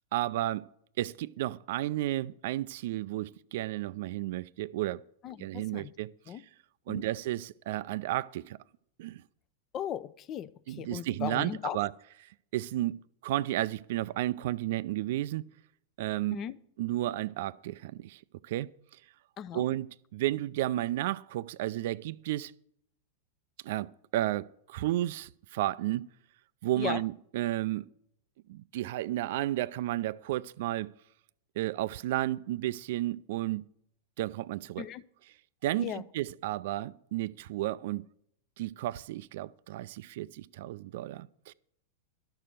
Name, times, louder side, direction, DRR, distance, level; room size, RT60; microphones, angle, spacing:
voice 1, 0.1-0.7 1.0-5.0 5.4-6.1 6.9-8.6 9.0-9.2 10.7-11.9 12.5-13.0 13.2-15.5 16.0-16.4 16.8-18.7 19.5-22.5 23.6-26.0 26.6-27.8 28.5-30.9 31.6-33.6 34.2-34.9 35.6-38.0 38.6-41.5, right 15 dB, 60° right, 0.4 m, -32 dB
voice 2, 5.2-5.9 6.3-6.4 6.9-7.0 9.7-11.8 16.3-16.6 19.4-19.6 26.8-27.0 34.8-35.0 35.8-36.0, left 10 dB, 35° left, 0.6 m, -37 dB
12.0 x 6.8 x 7.6 m
hypercardioid pair, 105°, 0 cm